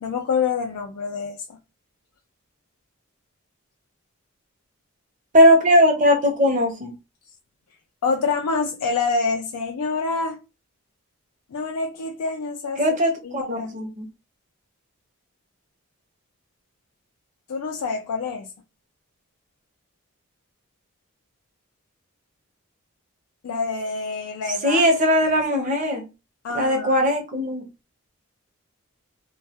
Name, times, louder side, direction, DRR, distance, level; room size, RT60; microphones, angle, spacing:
voice 1, 0.0-1.6 8.0-10.4 11.5-12.8 13.3-13.7 17.5-18.5 23.4-24.9 26.4-27.0, left 4 dB, 80° left, 0.4 m, -26 dB
voice 2, 5.3-6.9 12.8-14.1 24.6-26.1 26.5-27.7, equal, 35° right, 0.6 m, -19 dB
2.2 x 2.1 x 2.7 m
head